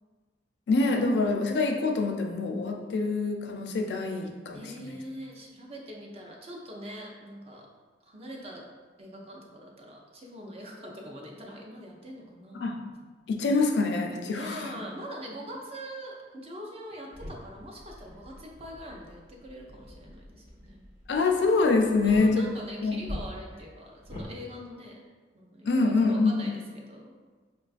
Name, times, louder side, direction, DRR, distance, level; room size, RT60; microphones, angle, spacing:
voice 1, 0.7-5.0 12.5-12.8 13.3-14.7 21.1-22.5 22.8-23.0 25.6-26.5, left 3 dB, 70° left, 3 dB, 0.4 m, -25 dB
voice 2, 4.4-7.7 8.0-8.7 9.0-12.7 14.3-20.8 22.0-25.0 25.3-27.1, equal, 35° right, -1 dB, 0.5 m, -43 dB
sound 1, 17.1-24.3, equal, 60° right, 1.0 m, -45 dB
4.6 x 2.3 x 2.4 m, 1.4 s
head